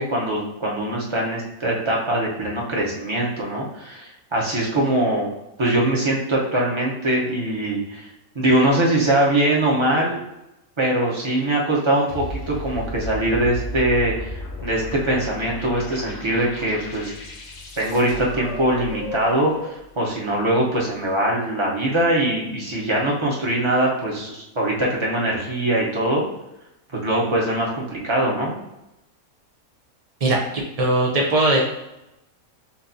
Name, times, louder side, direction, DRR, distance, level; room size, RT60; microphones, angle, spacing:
voice 1, 0.0-8.1 8.3-10.2 10.8-17.1 17.8-19.5 20.0-26.2 27.0-28.6, right 1 dB, 25° right, -3 dB, 0.8 m, -22 dB
sound 1, 12.1-19.9, left 2 dB, 55° left, 0.9 m, -34 dB
voice 2, 30.8-31.6, right 2 dB, 65° right, 0 dB, 0.3 m, -18 dB
6.8 x 2.6 x 2.7 m, 0.90 s
omnidirectional pair, 1.5 m